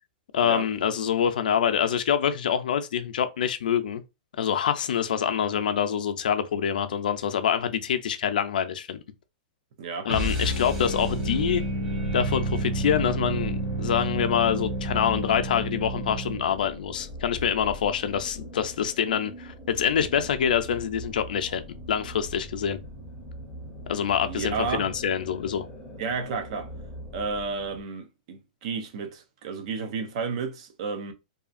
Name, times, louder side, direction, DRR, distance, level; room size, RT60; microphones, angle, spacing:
voice 1, 0.3-4.0 4.4-9.0 10.1-11.6 12.1-22.8 23.9-25.7, left 8 dB, 80° left, 0.5 m, -26 dB
voice 2, 9.8-10.1 24.2-24.9 26.0-26.7 27.1-31.1, right 5 dB, 45° right, 0.5 m, -32 dB
sound 1, 10.1-16.5, right 1 dB, 15° right, 1.0 m, -30 dB
sound 2, 10.4-27.8, equal, 5° left, 0.7 m, -41 dB
2.7 x 2.4 x 2.4 m
supercardioid pair, 170°, 5 cm